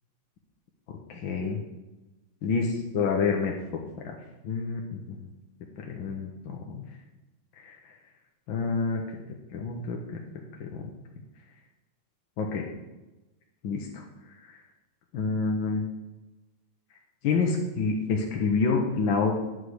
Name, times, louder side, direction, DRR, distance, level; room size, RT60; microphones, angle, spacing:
voice 1, 1.1-1.6 2.4-3.5 4.0-4.2 4.4-5.3 5.8-6.8 7.6-7.8 8.5-9.2 9.5-10.2 10.6-10.8 12.4-12.7 13.6-14.0 14.4-14.6 15.1-15.8 17.2-19.3, left 4 dB, 70° left, 0 dB, 1.7 m, -28 dB
10.0 x 4.9 x 7.8 m, 1.1 s
omnidirectional pair, 2.3 m